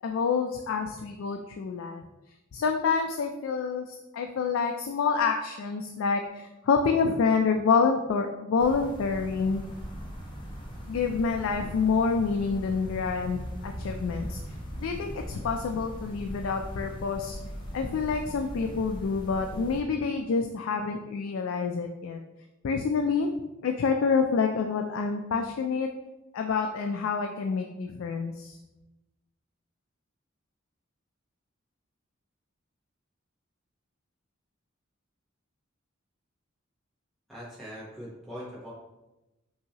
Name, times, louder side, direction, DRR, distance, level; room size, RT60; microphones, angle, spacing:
voice 1, 0.0-2.0 2.5-9.6 10.9-14.4 14.8-22.2 22.6-23.3 23.6-25.9 26.3-28.6, left 5 dB, 80° left, 4 dB, 0.3 m, -27 dB
sound 1, 8.6-19.8, equal, 25° left, 1.0 m, -40 dB
voice 2, 37.3-38.7, equal, ahead, -9 dB, 1.0 m, -41 dB
5.7 x 2.7 x 2.8 m, 0.99 s
head